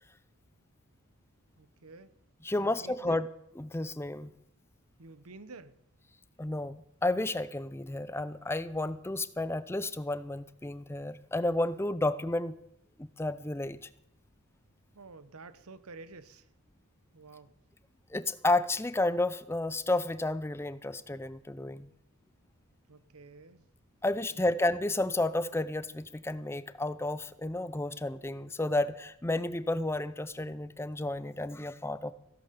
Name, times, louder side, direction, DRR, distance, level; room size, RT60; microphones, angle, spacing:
voice 1, 1.6-2.1 2.6-3.2 4.2-4.3 5.0-5.8 14.9-16.5 17.1-17.6 22.9-23.7 24.3-24.6, right 3 dB, 80° right, 14 dB, 1.0 m, -50 dB
voice 2, 2.4-3.3 3.6-4.3 6.4-12.6 13.0-13.8 18.1-21.9 24.0-32.1, left 2 dB, 10° left, 15 dB, 0.5 m, -31 dB
16.0 x 11.0 x 6.7 m, 0.76 s
head